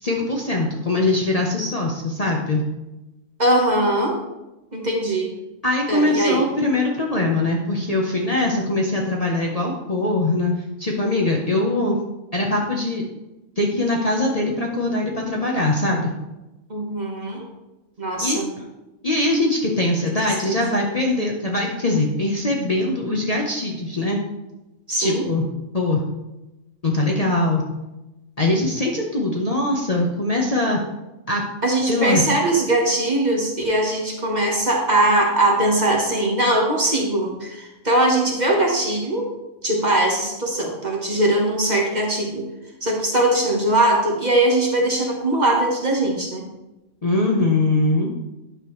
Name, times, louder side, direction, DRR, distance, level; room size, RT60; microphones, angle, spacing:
voice 1, 0.0-2.6 5.6-10.5 10.8-12.0 12.3-13.0 13.6-16.1 18.2-18.4 19.0-24.2 25.0-25.4 25.7-26.0 26.8-27.6 28.4-30.8 31.3-31.4 31.9-32.2 47.0-48.1, left 2 dB, 35° left, -1 dB, 0.9 m, -22 dB
voice 2, 3.4-4.2 4.7-5.3 5.9-6.5 16.7-17.4 18.0-18.5 20.2-20.8 24.9-25.3 31.6-39.3 39.6-42.4 42.8-46.4, right 1 dB, 35° right, -1 dB, 1.4 m, -21 dB
10.0 x 6.7 x 3.2 m, 1.0 s
omnidirectional pair, 1.3 m